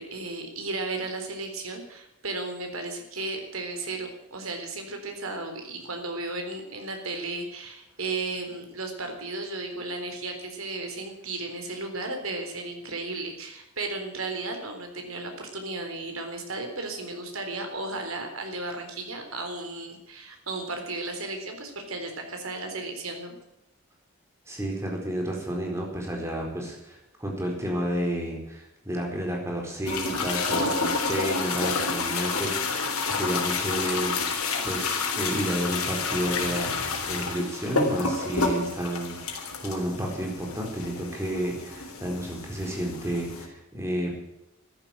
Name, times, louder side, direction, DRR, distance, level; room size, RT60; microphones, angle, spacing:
voice 1, 0.0-23.4, right 3 dB, 80° right, 4 dB, 3.9 m, -34 dB
voice 2, 24.5-34.3 34.6-44.2, equal, 15° right, 0 dB, 4.3 m, -31 dB
sound 1, 29.9-43.5, left 4 dB, 90° left, 3.5 m, -29 dB
14.0 x 11.0 x 9.1 m, 0.86 s
head